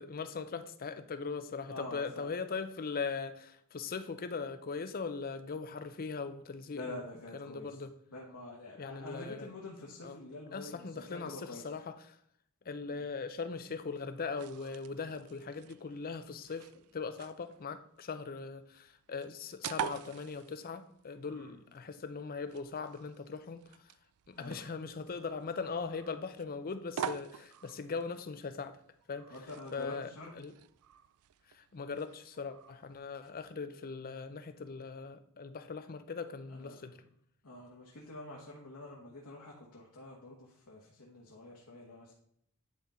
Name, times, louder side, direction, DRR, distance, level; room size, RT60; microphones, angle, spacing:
voice 1, 0.0-7.0 7.3-7.9 8.8-9.5 10.0-10.2 10.5-12.0 12.7-23.6 24.3-28.8 29.1-29.3 29.7-30.1 30.4-30.5 31.5-37.0, left 4 dB, 40° left, 0.5 m, -40 dB
voice 2, 1.7-2.3 6.7-7.8 8.1-11.7 12.9-13.0 21.3-21.6 24.3-24.6 29.3-30.4 36.5-36.8 37.4-42.1, left 2 dB, 80° left, 1.2 m, -47 dB
sound 1, 13.8-33.5, right 8 dB, 70° right, 0.4 m, -47 dB
9.8 x 3.9 x 4.2 m
head